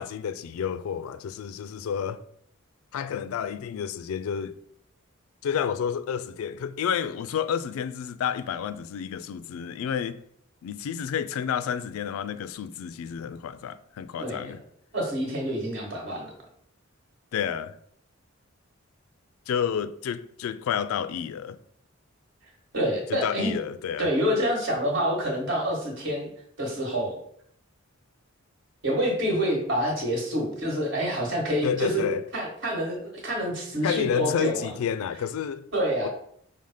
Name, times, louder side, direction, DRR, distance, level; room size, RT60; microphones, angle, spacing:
voice 1, 0.0-2.2 2.9-4.5 5.4-10.2 10.6-14.6 17.3-17.8 19.5-21.6 23.1-24.1 31.6-32.3 33.8-35.6 36.0-36.1, left 8 dB, 80° left, 0.3 m, -30 dB
voice 2, 14.2-14.6 14.9-16.3 22.7-23.6 24.0-26.3 26.6-27.2 28.8-32.0 32.3-34.7 35.7-36.1, equal, 60° right, 1.4 m, -27 dB
5.5 x 2.0 x 4.8 m
head